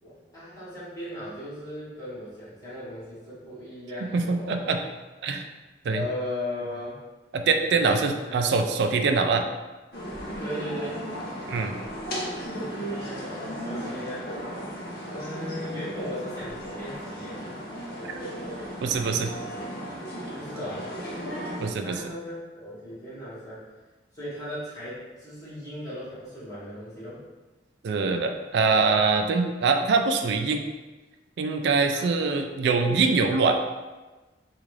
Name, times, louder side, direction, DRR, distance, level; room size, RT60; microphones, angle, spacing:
voice 1, 0.0-4.8 5.9-7.0 7.7-8.5 10.4-11.1 12.5-14.3 15.0-17.5 20.3-20.9 21.8-23.7 24.1-27.2 31.9-32.7, left 1 dB, 20° left, -11 dB, 1.5 m, -37 dB
voice 2, 4.1-4.8 5.2-5.4 5.8-6.1 7.3-9.5 11.5-11.8 18.8-19.3 21.6-22.1 27.8-30.7 31.4-33.6, right 4 dB, 65° right, 5 dB, 0.3 m, -24 dB
sound 1, 9.9-21.7, equal, 55° left, 0.7 m, -35 dB
3.7 x 2.4 x 3.1 m, 1.2 s
head